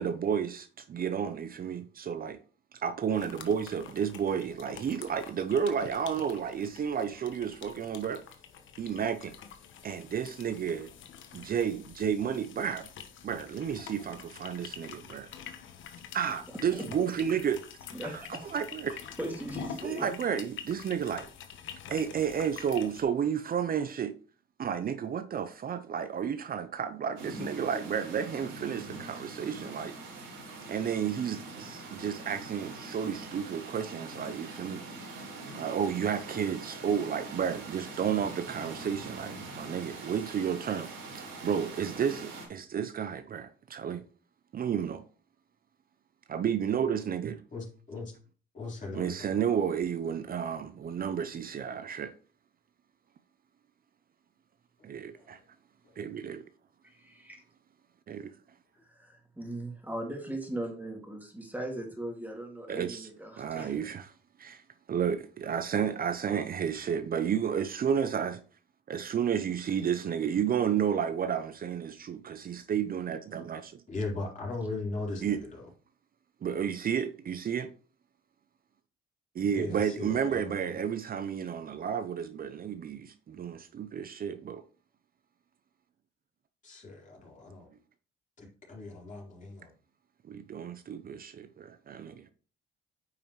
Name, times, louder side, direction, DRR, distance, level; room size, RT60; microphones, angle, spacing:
voice 1, 0.0-2.4 2.7-8.2 8.8-9.3 9.8-10.9 11.3-12.9 13.2-15.3 16.1-17.6 18.0-18.2 18.5-19.0 19.8-21.3 21.9-24.2 24.6-30.0 30.7-34.8 35.5-44.0 44.5-45.0 46.3-47.4 48.9-52.1 54.8-55.4 56.0-56.4 58.1-58.3 62.7-63.1 63.4-64.1 64.4-64.6 64.9-68.4 68.9-73.8 75.2-75.4 76.4-77.7 79.3-84.6 90.2-92.3, right 8 dB, 45° right, 0.7 m, -32 dB
sound 1, 3.1-23.0, left 8 dB, 75° left, 1.2 m, -47 dB
voice 2, 17.9-18.5 18.9-20.1 56.8-57.4 58.8-63.9, right 1 dB, 10° right, 2.3 m, -39 dB
sound 2, 27.2-42.5, right 2 dB, 80° right, 3.5 m, -43 dB
voice 3, 47.5-48.1 48.5-49.3 55.1-55.3 73.9-75.6 79.5-80.7 86.6-87.7 88.4-89.7, left 3 dB, 40° left, 4.2 m, -38 dB
9.0 x 5.7 x 3.2 m
cardioid pair, 90°, 20 cm